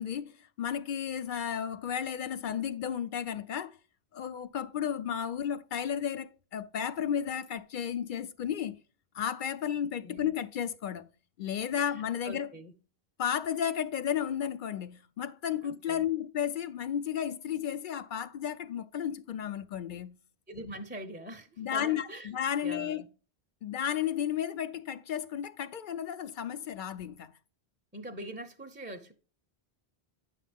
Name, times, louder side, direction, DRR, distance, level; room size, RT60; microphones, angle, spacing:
voice 1, 0.0-3.8 4.1-8.8 9.1-11.1 11.4-12.5 13.2-20.2 21.6-23.0 23.6-27.3, left 9 dB, 60° left, 0.7 m, -33 dB
voice 2, 9.8-10.3 11.7-12.7 15.6-16.1 20.5-23.1 27.9-29.1, right 1 dB, 10° right, 0.6 m, -44 dB
9.0 x 5.9 x 3.4 m
omnidirectional pair, 1.1 m